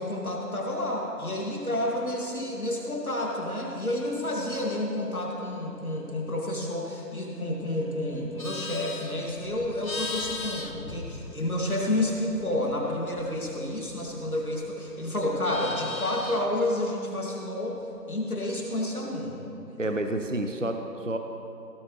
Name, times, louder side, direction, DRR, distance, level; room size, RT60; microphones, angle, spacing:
voice 1, 0.0-19.4 19.7-20.0, left 1 dB, 60° left, -2 dB, 2.3 m, -30 dB
Livestock farm animals working animals, 8.1-11.8 12.2-14.7 15.0-16.6, left 3 dB, 90° left, 1.2 m, -39 dB
voice 2, 19.8-21.2, right 1 dB, 50° right, 6 dB, 0.5 m, -29 dB
17.5 x 7.8 x 3.1 m, 2.8 s
figure-of-eight pair, 175°, 50 cm